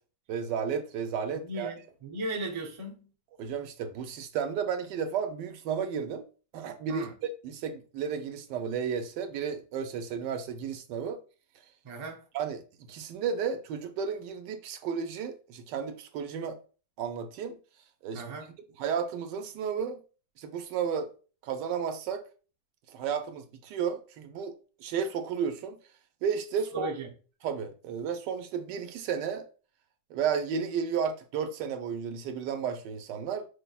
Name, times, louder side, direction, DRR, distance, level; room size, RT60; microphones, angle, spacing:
voice 1, 0.3-1.7 3.4-6.2 6.5-7.1 7.4-11.2 12.3-12.6 12.9-16.6 17.0-17.6 18.0-18.2 18.8-20.0 20.4-21.1 21.4-22.2 22.9-24.5 24.8-25.8 26.2-26.9 27.4-29.5 30.1-33.5, right 7 dB, 85° right, 1.2 m, -33 dB
voice 2, 1.3-3.1 6.9-7.1 11.8-12.2 18.1-18.5 26.7-27.1, right 2 dB, 35° right, 0.4 m, -36 dB
4.6 x 3.3 x 2.3 m
omnidirectional pair, 1.9 m